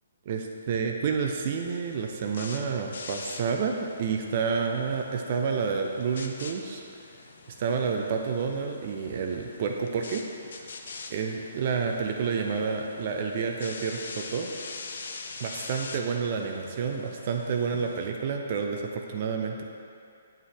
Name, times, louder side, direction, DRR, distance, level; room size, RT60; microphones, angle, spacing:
voice 1, 0.3-6.8 7.6-10.2 11.1-14.5 15.4-19.6, right 5 dB, 40° right, 2 dB, 0.6 m, -29 dB
sound 1, 1.7-18.1, left 4 dB, 55° left, 0.7 m, -44 dB
9.0 x 8.6 x 3.3 m, 2.5 s
figure-of-eight pair, 130°, 0 cm